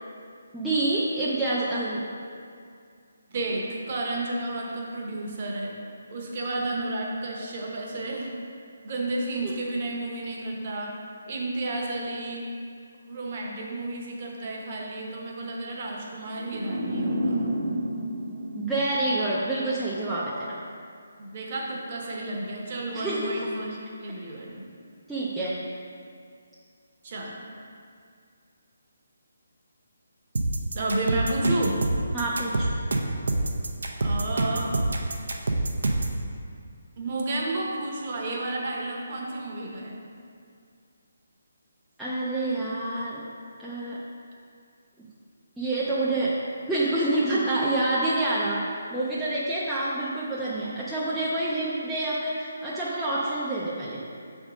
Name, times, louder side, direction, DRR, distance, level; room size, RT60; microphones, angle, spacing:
voice 1, 0.5-2.1 9.4-9.5 18.6-20.6 22.9-23.5 25.1-25.6 32.1-32.7 42.0-43.2 43.6-44.0 45.6-46.4 46.7-48.6 48.9-54.0, right 2 dB, ahead, -11 dB, 0.4 m, -27 dB
voice 2, 3.3-5.7 6.1-8.3 8.8-10.9 11.3-12.5 13.1-17.4 21.2-24.6 27.0-27.4 30.7-31.8 34.0-34.7 37.0-40.0, right 2 dB, 35° right, -2 dB, 0.9 m, -31 dB
sound 1, 16.4-19.5, right 1 dB, 55° right, 1.2 m, -30 dB
sound 2, 30.4-36.2, right 2 dB, 75° right, 0.7 m, -26 dB
6.2 x 3.5 x 4.9 m, 2.3 s
hypercardioid pair, 170°, 0 cm